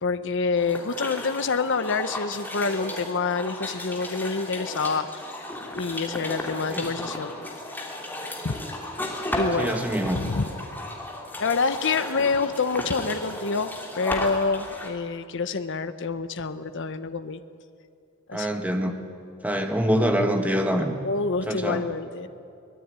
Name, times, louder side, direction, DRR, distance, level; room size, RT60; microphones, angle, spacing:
voice 1, 0.0-5.5 5.7-7.3 8.4-8.7 9.4-9.8 10.1-10.5 11.4-13.7 13.9-17.4 18.3-18.5 21.0-22.3, left 4 dB, 55° left, 10 dB, 0.9 m, -27 dB
sound 1, 0.6-14.9, left 1 dB, 10° left, 3.2 m, -34 dB
voice 2, 9.6-10.2 18.3-19.0 19.4-20.9 21.5-21.9, equal, 5° right, 5 dB, 1.9 m, -25 dB
24.0 x 20.0 x 9.6 m, 2.5 s
head